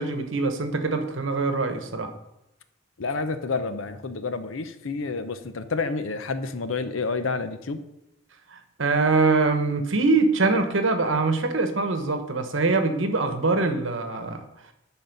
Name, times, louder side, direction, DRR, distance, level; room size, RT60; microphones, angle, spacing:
voice 1, 0.0-2.1 8.5-14.4, right 3 dB, 70° right, 7 dB, 1.1 m, -23 dB
voice 2, 3.0-7.8, left 4 dB, 75° left, 10 dB, 0.7 m, -29 dB
10.5 x 4.2 x 5.3 m, 0.87 s
head